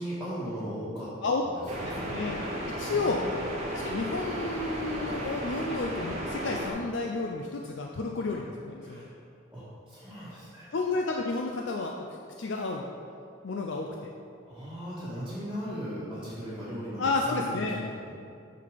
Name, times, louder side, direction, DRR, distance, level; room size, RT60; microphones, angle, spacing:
voice 1, 0.0-1.1 1.4-2.2 2.8-3.4 8.8-9.1 9.5-10.7 14.5-18.1, equal, 5° right, -13 dB, 1.6 m, -38 dB
sound 1, 1.7-6.7, right 1 dB, 30° right, 1.0 m, -34 dB
voice 2, 1.8-2.4 2.7-3.2 3.7-9.1 10.7-12.9 13.4-14.1 17.0-17.7, left 3 dB, 65° left, 1 dB, 0.5 m, -31 dB
6.6 x 5.9 x 5.1 m, 2.4 s
head